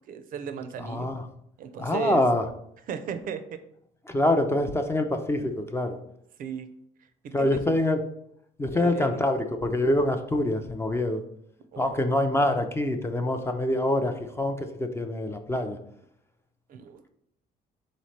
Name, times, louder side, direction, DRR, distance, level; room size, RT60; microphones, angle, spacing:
voice 1, 0.1-1.1 1.6-2.2 2.9-3.6 6.4-6.7 7.2-7.6 8.7-9.3 11.7-12.1 16.7-17.1, right 7 dB, 55° right, 10 dB, 0.5 m, -35 dB
voice 2, 0.8-1.3 1.8-2.5 4.1-6.0 7.3-8.0 8.6-11.2 11.8-15.8, left 1 dB, 15° left, 6 dB, 0.4 m, -25 dB
4.0 x 3.1 x 4.1 m, 0.73 s
cardioid pair, 110°, 17 cm